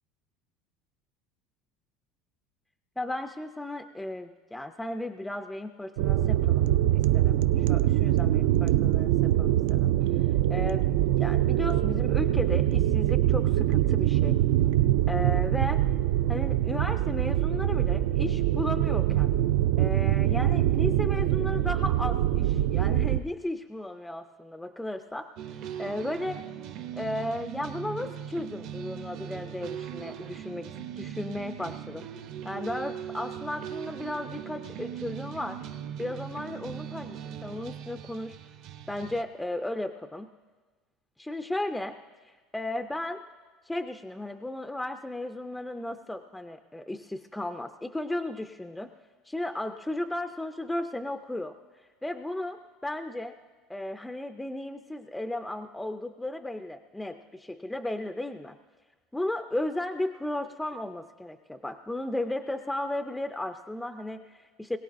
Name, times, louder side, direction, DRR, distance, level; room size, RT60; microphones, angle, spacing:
voice 1, 3.0-10.9 11.2-14.4 15.1-15.9 16.3-19.3 19.8-25.5 25.8-26.5 26.9-32.1 32.4-35.6 36.0-38.4 38.9-40.3 41.2-42.0 42.2-43.2 43.6-48.9 49.3-53.4 53.7-58.6 59.1-64.8, left 1 dB, 5° left, 7 dB, 0.3 m, -35 dB
sound 1, 6.0-23.2, right 13 dB, 80° right, 0.3 m, -24 dB
sound 2, 25.4-39.2, right 9 dB, 55° right, 0.6 m, -40 dB
21.5 x 17.0 x 2.5 m, 1.3 s
cardioid pair, 160°, 0 cm